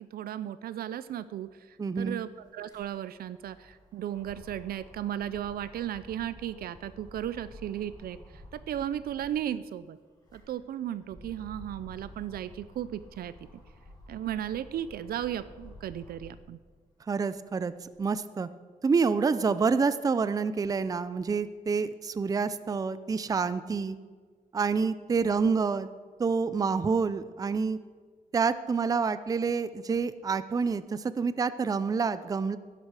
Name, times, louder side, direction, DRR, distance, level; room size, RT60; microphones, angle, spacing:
voice 1, 0.1-1.5 2.0-8.2 8.5-10.0 10.3-13.3 14.1-16.6, right 11 dB, 80° right, 15 dB, 0.4 m, -35 dB
sound 1, 1.4-1.5 1.7-9.5 10.0-16.5 17.0-18.2, left 1 dB, 25° left, 4.0 m, -51 dB
voice 2, 1.8-2.2 17.1-17.7 18.0-18.5 18.8-24.0 24.5-25.9 26.2-27.8 28.3-32.6, right 5 dB, 25° right, 14 dB, 0.4 m, -27 dB
12.0 x 11.0 x 4.8 m, 1.5 s
wide cardioid pair, 125°, 15 cm